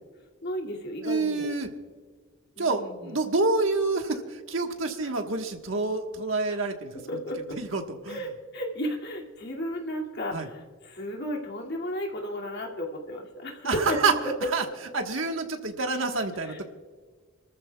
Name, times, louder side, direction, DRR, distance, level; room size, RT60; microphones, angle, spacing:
voice 1, 0.4-1.6 2.6-3.2 5.0-5.1 6.5-6.6 6.9-7.6 8.1-14.1 16.4-16.6, equal, 55° left, 0 dB, 2.4 m, -34 dB
voice 2, 1.0-1.7 2.6-6.9 7.6-8.2 10.3-10.5 13.6-14.1 14.5-14.6 14.9-16.6, right 3 dB, 75° right, 4 dB, 1.4 m, -27 dB
26.5 x 14.0 x 2.3 m, 1.5 s
head